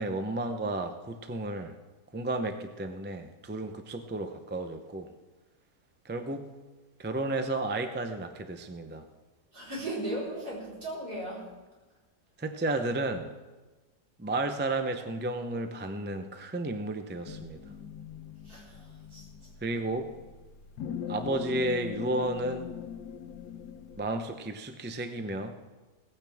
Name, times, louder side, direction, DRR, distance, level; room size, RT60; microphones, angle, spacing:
voice 1, 0.0-1.7 2.1-5.1 6.0-6.5 7.0-9.0 12.4-13.3 14.2-17.6 19.6-20.1 21.1-22.7 24.0-25.5, right 2 dB, 15° right, 7 dB, 0.3 m, -32 dB
voice 2, 9.5-11.5 18.4-19.3, right 1 dB, 70° right, -6 dB, 5.1 m, -37 dB
sound 1, 17.3-24.1, left 8 dB, 90° left, 1.5 m, -41 dB
17.5 x 15.0 x 3.6 m, 1.2 s
omnidirectional pair, 1.7 m